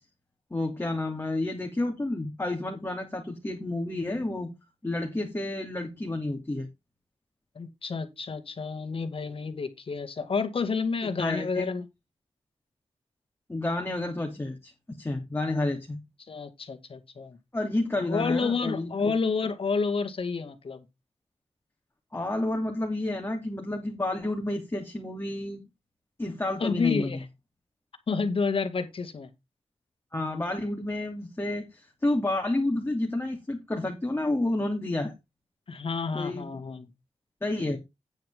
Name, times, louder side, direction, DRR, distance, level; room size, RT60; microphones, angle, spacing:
voice 1, 0.5-4.5 4.8-6.7 11.0-11.7 13.5-16.0 17.5-19.1 22.1-25.6 26.2-27.2 30.1-35.1 36.1-36.5 37.4-37.8, left 2 dB, 20° left, 2.8 m, -30 dB
voice 2, 7.6-11.9 16.3-17.4 18.0-20.8 26.6-27.2 28.1-29.3 35.7-36.9, left 4 dB, 60° left, 2.0 m, -29 dB
9.5 x 9.0 x 3.7 m
cardioid pair, 70°, 11 cm